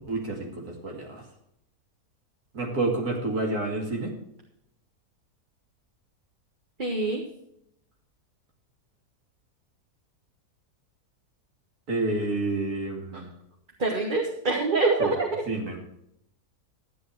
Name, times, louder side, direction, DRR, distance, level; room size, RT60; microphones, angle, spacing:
voice 1, 0.1-1.2 2.5-4.1 11.9-13.3 15.0-15.1 15.5-15.8, right 2 dB, 75° right, 1 dB, 2.8 m, -29 dB
voice 2, 6.8-7.2 13.1-13.2 13.8-15.4, right 3 dB, 30° right, 0 dB, 1.6 m, -25 dB
13.0 x 8.1 x 4.7 m, 0.75 s
omnidirectional pair, 1.6 m